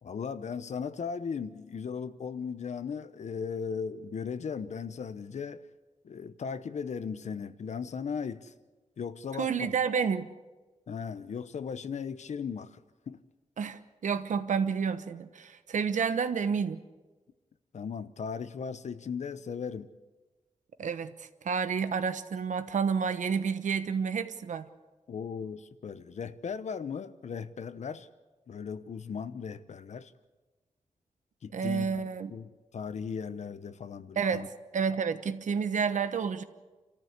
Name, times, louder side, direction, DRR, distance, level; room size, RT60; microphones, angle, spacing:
voice 1, 0.0-5.6 6.0-8.5 9.0-9.7 10.9-12.8 13.1-13.2 17.7-19.9 25.1-28.1 28.5-30.1 31.4-34.5, left 6 dB, 65° left, 1.0 m, -37 dB
voice 2, 9.4-10.3 13.6-16.8 20.8-24.7 31.5-32.3 34.2-36.4, right 6 dB, 75° right, 1.1 m, -30 dB
29.0 x 14.0 x 8.2 m
wide cardioid pair, 145°, 13 cm